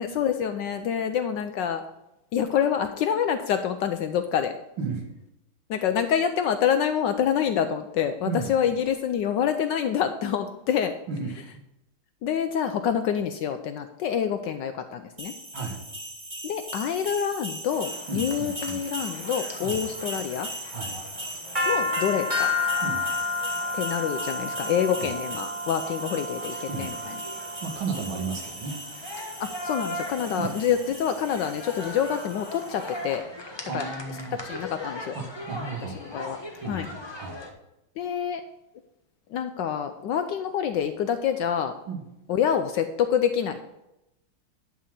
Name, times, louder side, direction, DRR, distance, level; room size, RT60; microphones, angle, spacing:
voice 1, 0.0-1.8 2.3-4.5 5.7-10.9 12.2-15.3 16.4-20.5 21.7-22.5 23.7-27.2 29.4-33.2 33.7-33.9 34.4-35.2 36.0-36.4 36.7-36.9 38.0-38.4 39.3-41.7 42.3-43.6, left 8 dB, 75° left, 8 dB, 1.1 m, -27 dB
voice 2, 11.1-11.4 15.5-15.8 18.1-18.8 19.6-19.8 20.7-21.0 22.8-23.0 25.0-25.1 26.7-26.9 27.6-28.8 30.4-30.5 33.6-34.4 35.1-36.0 36.6-37.4 41.9-42.0, right 4 dB, 65° right, 2 dB, 2.3 m, -33 dB
sound 1, 15.2-32.9, left 1 dB, 20° right, 2.2 m, -33 dB
sound 2, 17.7-37.5, left 1 dB, 20° left, 0.8 m, -41 dB
11.0 x 4.2 x 7.4 m, 0.90 s
omnidirectional pair, 2.3 m